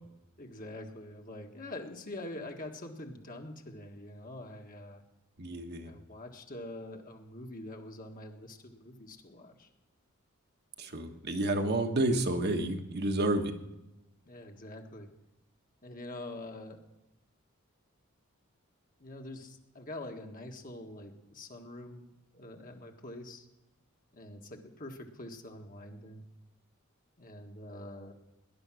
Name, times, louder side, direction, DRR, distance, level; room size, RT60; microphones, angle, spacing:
voice 1, 0.4-5.0 5.8-9.7 14.2-15.1 15.8-16.8 19.0-22.1 22.3-23.5 24.1-26.2 27.2-28.1, left 1 dB, 40° left, 3 dB, 1.7 m, -45 dB
voice 2, 5.4-5.9 10.8-13.5, right 2 dB, 45° right, 4 dB, 1.3 m, -30 dB
18.5 x 11.0 x 6.3 m, 0.96 s
head